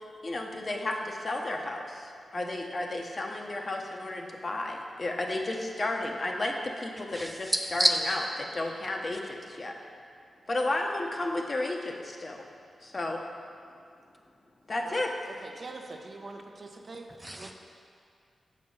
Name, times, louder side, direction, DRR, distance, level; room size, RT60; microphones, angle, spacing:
voice 1, 0.2-7.9 8.5-9.7 10.5-12.4 12.8-13.2 14.7-15.4, left 2 dB, 45° left, 1 dB, 0.8 m, -33 dB
voice 2, 7.1-8.2 9.1-9.2 17.1-17.5, right 1 dB, 15° right, 3 dB, 0.5 m, -29 dB
voice 3, 15.4-17.1 17.4-17.5, right 3 dB, 55° right, 3 dB, 0.7 m, -43 dB
6.8 x 5.1 x 5.4 m, 2.4 s
cardioid pair, 65°, 0 cm